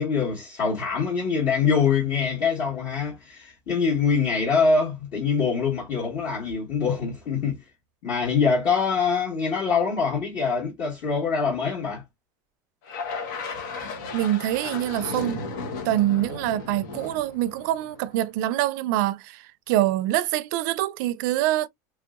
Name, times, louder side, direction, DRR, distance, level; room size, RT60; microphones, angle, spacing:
voice 1, 0.0-7.6 8.0-12.0, left 5 dB, 45° left, 1.3 m, -24 dB
sound 1, 12.9-18.2, left 4 dB, 85° left, 1.1 m, -35 dB
voice 2, 14.1-15.4 15.9-21.7, right 14 dB, 70° right, 0.4 m, -25 dB
3.2 x 2.7 x 2.4 m
cardioid pair, 160°, 10 cm